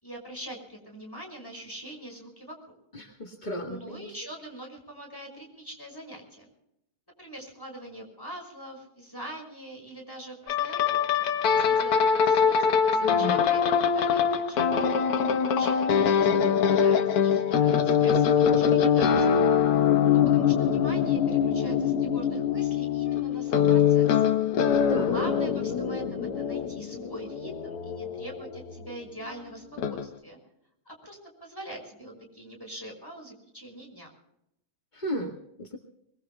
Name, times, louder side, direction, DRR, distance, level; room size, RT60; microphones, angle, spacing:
voice 1, 0.0-2.7 3.6-6.5 7.2-11.1 11.5-13.6 13.9-14.6 15.4-19.4 20.0-24.2 25.0-30.4 30.9-34.1, right 1 dB, 5° left, 1 dB, 5.5 m, -43 dB
voice 2, 2.9-4.1 13.0-13.4 24.8-25.4 34.9-35.8, left 1 dB, 35° left, 2 dB, 0.7 m, -34 dB
sound 1, 10.5-28.9 29.8-30.1, left 7 dB, 75° left, 1.3 m, -23 dB
25.0 x 22.5 x 2.3 m, 0.79 s
omnidirectional pair, 4.1 m